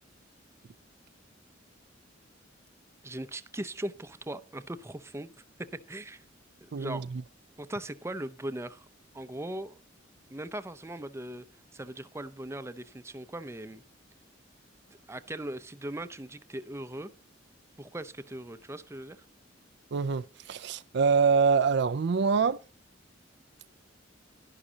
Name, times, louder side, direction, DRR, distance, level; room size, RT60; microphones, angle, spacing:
voice 1, 3.0-5.3 5.6-6.2 6.6-7.1 7.6-8.9 9.1-9.8 10.3-11.4 11.7-13.8 15.1-17.1 17.8-19.2, right 1 dB, 15° right, 0.6 m, -39 dB
voice 2, 6.7-7.2 19.9-22.6, right 5 dB, 60° right, 0.4 m, -25 dB
11.5 x 11.0 x 2.8 m
head